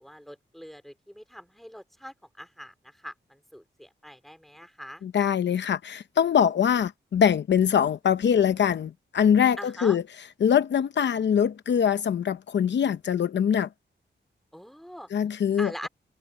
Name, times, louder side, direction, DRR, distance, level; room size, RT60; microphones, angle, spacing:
voice 1, 0.0-5.0 9.6-10.0 14.5-15.1 15.6-15.9, equal, ahead, 3.2 m, -43 dB
voice 2, 5.0-10.0 10.4-13.7 15.1-15.9, left 8 dB, 70° left, 0.7 m, -23 dB
wide cardioid pair, 180°, 19 cm